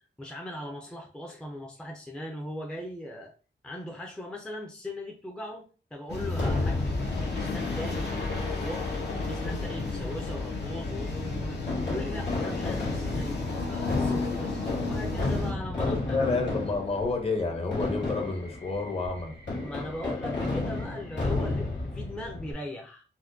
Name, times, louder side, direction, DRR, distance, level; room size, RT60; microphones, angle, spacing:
voice 1, 0.0-3.3 3.6-9.0 9.3-11.6 11.9-13.4 13.7-16.5 19.6-23.0, left 1 dB, 5° left, 0 dB, 0.4 m, -39 dB
sound 1, 6.1-15.5, left 3 dB, 65° left, 0.8 m, -32 dB
Fireworks, 6.4-22.5, left 2 dB, 85° left, 1.5 m, -33 dB
voice 2, 15.8-19.3, left 3 dB, 30° left, 2 dB, 0.7 m, -29 dB
4.2 x 2.1 x 2.6 m, 0.37 s
wide cardioid pair, 165°, 19 cm